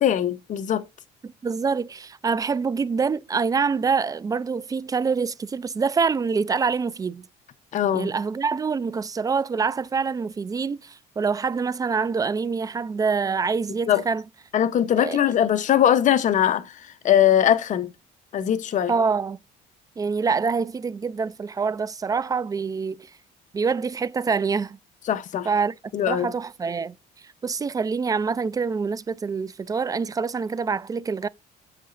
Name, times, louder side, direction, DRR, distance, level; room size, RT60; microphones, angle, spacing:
voice 1, 0.0-0.8 7.7-8.1 13.9-14.0 14.5-17.9 18.3-18.9 25.1-25.5 25.9-26.3, left 10 dB, 50° left, 0.8 m, -21 dB
voice 2, 1.2-7.2 7.9-14.2 15.0-15.2 18.9-19.4 20.0-23.1 23.5-24.8 25.5-25.7 26.1-27.0 27.4-31.3, right 5 dB, 20° right, 0.3 m, -25 dB
8.3 x 6.6 x 2.5 m
cardioid pair, 110°, 17 cm